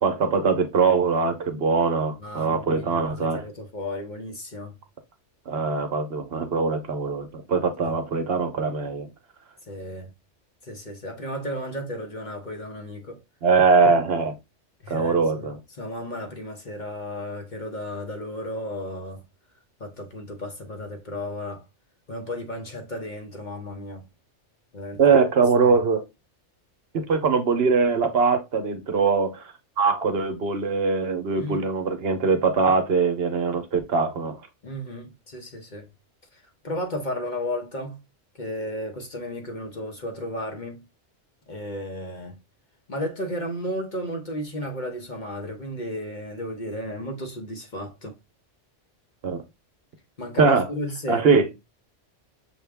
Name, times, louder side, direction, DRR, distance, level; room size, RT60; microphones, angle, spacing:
voice 1, 0.0-3.4 5.5-9.1 13.4-14.4 14.9-15.6 25.0-26.0 27.1-34.4 49.2-49.4 50.4-50.7 51.1-51.4, right 4 dB, 60° right, 0.9 m, -22 dB
voice 2, 2.2-4.8 7.8-8.0 9.7-10.1 10.6-13.2 14.8-19.2 19.8-21.6 22.1-24.1 24.7-25.1 25.6-25.8 31.4-31.6 34.6-35.9 36.3-38.0 38.3-40.8 41.5-42.4 42.9-48.1 50.2-51.3, left 1 dB, 45° left, 0.9 m, -34 dB
6.3 x 2.3 x 3.4 m
omnidirectional pair, 1.2 m